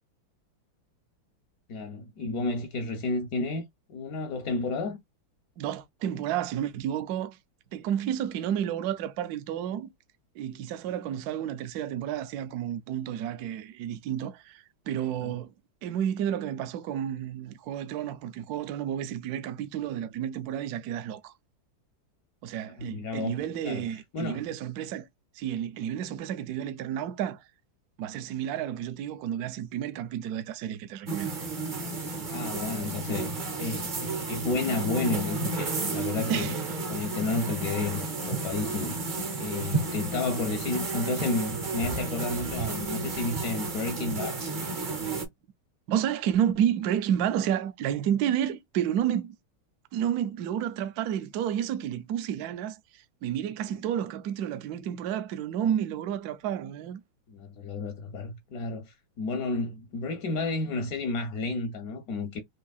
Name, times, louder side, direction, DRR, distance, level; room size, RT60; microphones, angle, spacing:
voice 1, 1.7-5.0 15.2-15.3 22.8-24.5 32.3-36.6 36.9-44.4 53.7-53.8 57.3-62.4, left 3 dB, 70° left, 0.9 m, -32 dB
voice 2, 5.6-7.4 7.7-9.9 10.4-15.5 15.8-21.3 22.4-25.1 25.3-27.4 28.0-31.3 36.3-36.6 45.9-49.4 49.9-57.0, right 10 dB, 75° right, 0.8 m, -31 dB
sound 1, 31.1-45.2, right 3 dB, 55° right, 0.5 m, -32 dB
4.3 x 2.7 x 2.3 m
omnidirectional pair, 2.2 m